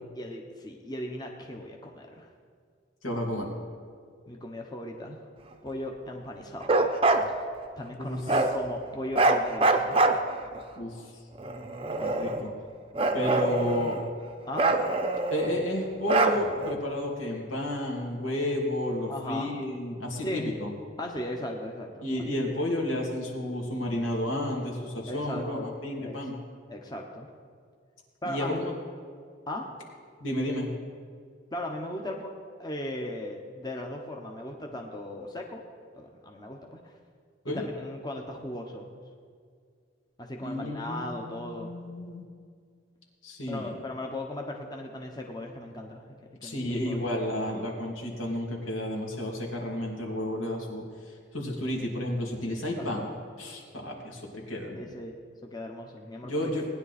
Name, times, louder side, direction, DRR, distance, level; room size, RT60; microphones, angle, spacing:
voice 1, 0.2-2.3 4.3-5.2 5.6-6.8 7.8-10.0 13.4-13.5 14.5-14.7 19.1-19.5 20.2-20.5 21.0-22.1 25.1-25.7 26.0-26.2 26.7-27.3 28.2-28.6 29.5-29.7 31.5-32.3 32.6-35.6 35.9-36.9 37.5-39.0 40.2-41.7 43.5-46.0 46.4-47.0 52.8-53.1 54.7-56.5, left 1 dB, 20° left, 1 dB, 0.9 m, -37 dB
voice 2, 3.0-3.5 8.0-8.3 10.8-11.1 12.0-12.5 13.1-14.0 15.3-20.7 22.0-26.4 28.3-28.7 30.2-30.7 37.4-37.6 40.4-42.2 43.2-43.8 46.4-53.1 53.4-54.8 56.2-56.7, left 1 dB, 85° left, -1 dB, 2.6 m, -32 dB
Bark, 6.6-7.3 8.3-8.5 9.1-10.6 11.4-12.5 13.0-14.1 14.5-15.6 16.1-16.8, right 2 dB, 30° right, 0.7 m, -25 dB
19.0 x 10.0 x 4.2 m, 2.1 s
head